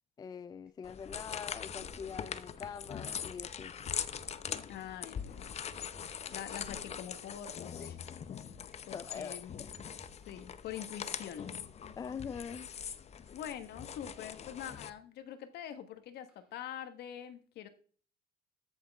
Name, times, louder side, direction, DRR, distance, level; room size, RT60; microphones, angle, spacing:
voice 1, 0.2-3.7 8.9-9.7 11.9-12.7, left 6 dB, 25° left, 0.3 m, -43 dB
sound 1, 0.7-0.8 1.2-1.3 1.7-2.4 3.2-3.4 4.2-4.7 5.2-6.6 7.2-7.4 8.2-8.8 9.2-9.4 9.7-10.6 11.2-11.5 12.2-12.8 13.3-14.6 15.3-15.4 16.3-16.7, equal, 5° right, 4.4 m, -60 dB
sound 2, 0.8-14.9, left 8 dB, 40° left, 0.7 m, -42 dB
voice 2, 4.7-8.0 8.3-8.6 8.9-9.6 10.3-11.5 13.3-17.7, left 10 dB, 75° left, 1.4 m, -45 dB
13.5 x 6.4 x 3.6 m
cardioid pair, 110°, 17 cm